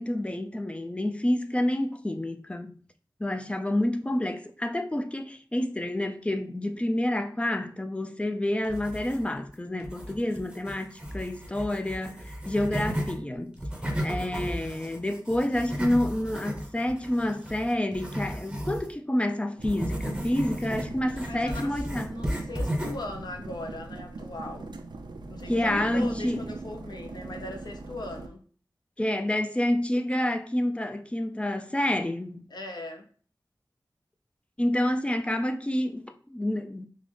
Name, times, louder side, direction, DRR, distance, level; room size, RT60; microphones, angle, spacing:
voice 1, 0.0-2.8 3.2-13.6 14.0-22.1 25.5-26.4 29.0-32.5 34.6-36.9, left 1 dB, 15° left, 0.3 m, -28 dB
sound 1, 8.6-9.5 9.8-13.2 13.5-18.9 19.6-23.1, equal, 10° right, 0.7 m, -34 dB
sound 2, 19.6-28.3, right 3 dB, 70° right, 0.4 m, -41 dB
voice 2, 21.3-21.8 22.1-24.8 25.3-28.4 32.5-33.1, left 2 dB, 65° left, 0.6 m, -39 dB
3.8 x 2.0 x 3.2 m
wide cardioid pair, 65°, 8 cm